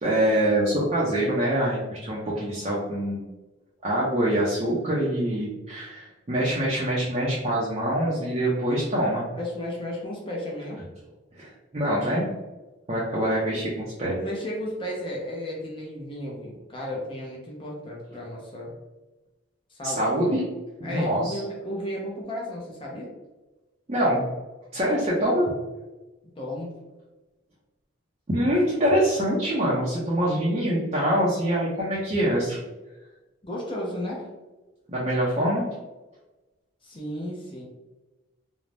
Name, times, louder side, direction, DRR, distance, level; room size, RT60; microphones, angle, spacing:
voice 1, 0.0-3.3 3.8-9.3 11.4-12.3 12.9-14.2 19.8-20.4 20.8-21.4 23.9-24.2 24.7-25.5 28.3-32.6 34.9-35.7, right 1 dB, 30° right, -6 dB, 0.5 m, -24 dB
voice 2, 9.3-10.8 14.1-18.7 19.7-20.5 20.8-23.1 26.4-26.7 33.4-34.3 36.8-37.6, left 1 dB, 25° left, -3 dB, 0.5 m, -34 dB
2.5 x 2.0 x 3.2 m, 1.1 s
head